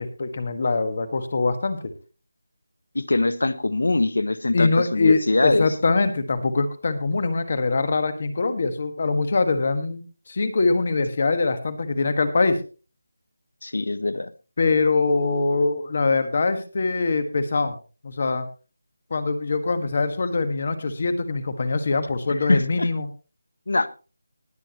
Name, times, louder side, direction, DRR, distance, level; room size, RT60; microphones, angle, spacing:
voice 1, 0.0-1.9 4.5-12.6 14.6-17.8 18.0-18.5 19.1-23.1, left 3 dB, 35° left, 10 dB, 1.5 m, -23 dB
voice 2, 2.9-5.7 13.6-14.3 22.5-22.9 23.7-23.9, left 2 dB, 70° left, 14 dB, 1.3 m, -23 dB
19.5 x 8.9 x 3.0 m, 0.34 s
figure-of-eight pair, 180°, 0 cm